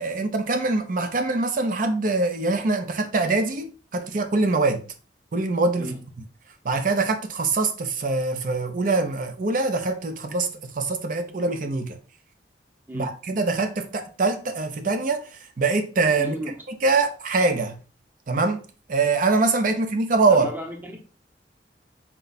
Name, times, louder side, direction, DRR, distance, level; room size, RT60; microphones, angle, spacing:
voice 1, 0.0-4.9 5.3-6.0 6.6-12.0 12.9-16.4 16.8-17.8 18.3-18.6 18.9-20.5, right 3 dB, 50° right, 0.5 m, -23 dB
voice 2, 16.2-16.5 20.4-21.0, equal, 10° right, 0.8 m, -33 dB
4.4 x 2.2 x 4.0 m
head